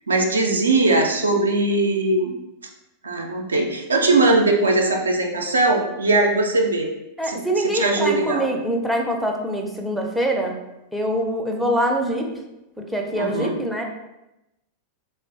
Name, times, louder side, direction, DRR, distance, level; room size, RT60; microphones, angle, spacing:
voice 1, 0.1-2.3 3.0-6.9 7.2-8.5 13.2-13.5, right 2 dB, 75° right, 2 dB, 0.3 m, -20 dB
voice 2, 7.2-10.6 10.9-12.3 12.8-13.8, right 1 dB, ahead, 0 dB, 0.4 m, -24 dB
3.2 x 2.0 x 2.5 m, 0.92 s
figure-of-eight pair, 90°, 0 cm